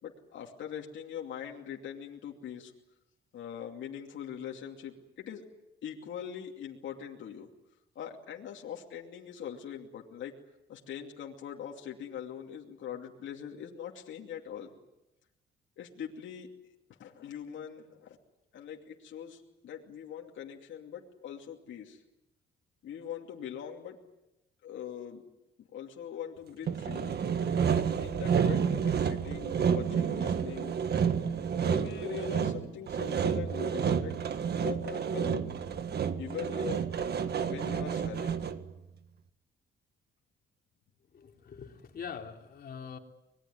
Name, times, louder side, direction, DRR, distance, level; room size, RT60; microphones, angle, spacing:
voice 1, 0.0-2.7 3.3-5.4 5.8-7.5 7.9-10.4 10.7-14.7 15.8-16.5 17.0-18.2 18.5-22.0 22.8-24.1 24.6-25.2 25.7-27.2 27.7-30.7 31.6-34.2 34.6-35.5 36.2-36.9 37.4-38.4, left 9 dB, 70° left, 0 dB, 2.7 m, -42 dB
Sawing, 26.7-38.7, right 7 dB, 55° right, 1.7 m, -30 dB
voice 2, 41.1-43.0, left 6 dB, 50° left, 2 dB, 3.5 m, -43 dB
25.0 x 20.5 x 9.5 m, 0.94 s
cardioid pair, 90°, 20 cm